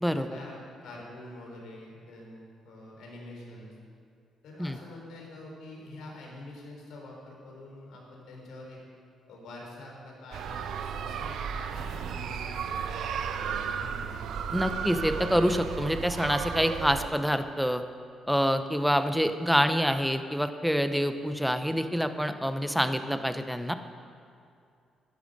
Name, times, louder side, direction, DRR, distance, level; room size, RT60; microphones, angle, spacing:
voice 1, 0.0-3.7 4.4-8.8 9.3-14.3, left 1 dB, 80° left, -1 dB, 3.8 m, -46 dB
sound 1, 10.3-17.1, right 7 dB, 75° right, 0.8 m, -34 dB
voice 2, 14.5-17.8 18.3-23.7, equal, ahead, 9 dB, 0.8 m, -26 dB
12.0 x 10.5 x 6.6 m, 2.5 s
cardioid pair, 90°, 0 cm